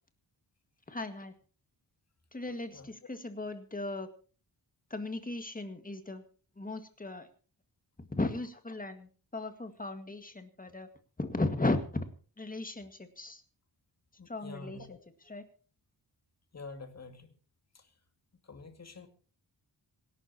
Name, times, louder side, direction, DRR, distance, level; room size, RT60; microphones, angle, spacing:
voice 1, 0.9-1.3 2.3-4.1 4.9-6.2 6.6-7.3 8.0-10.9 11.2-12.1 12.4-13.4 14.3-14.9 15.3-15.5, left 2 dB, 20° left, 8 dB, 1.9 m, -36 dB
voice 2, 14.2-15.0 16.5-17.3 17.7-17.9 18.4-19.1, left 3 dB, 35° left, 6 dB, 2.3 m, -47 dB
26.5 x 12.0 x 2.9 m, 0.39 s
wide cardioid pair, 150°, 44 cm